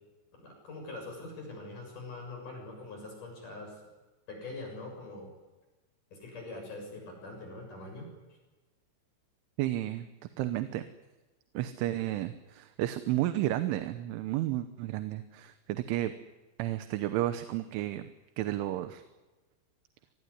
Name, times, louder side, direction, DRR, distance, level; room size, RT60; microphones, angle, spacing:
voice 1, 0.3-3.7 4.3-5.3 6.1-8.1, left 2 dB, 45° left, 1 dB, 8.4 m, -43 dB
voice 2, 9.6-10.1 10.4-10.9 11.6-16.1 16.6-18.1 18.4-19.0, right 14 dB, 85° right, 10 dB, 3.5 m, -32 dB
25.0 x 20.5 x 9.8 m, 1.2 s
omnidirectional pair, 5.5 m